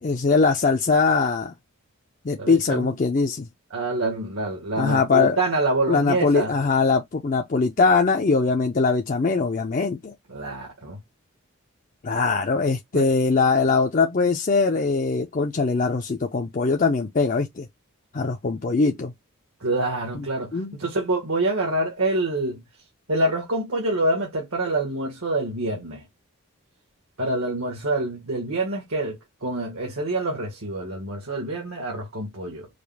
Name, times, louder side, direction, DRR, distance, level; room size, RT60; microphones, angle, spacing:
voice 1, 0.0-1.5 2.2-3.5 4.8-5.4 5.9-10.1 12.0-17.7 18.1-19.1 20.1-20.3 20.5-20.8, left 4 dB, 35° left, 0.4 m, -21 dB
voice 2, 2.4-2.9 3.7-6.5 10.3-11.0 12.9-13.1 19.6-22.6 23.1-26.0 27.2-32.7, right 2 dB, 85° right, 1.7 m, -26 dB
5.0 x 2.4 x 3.4 m
head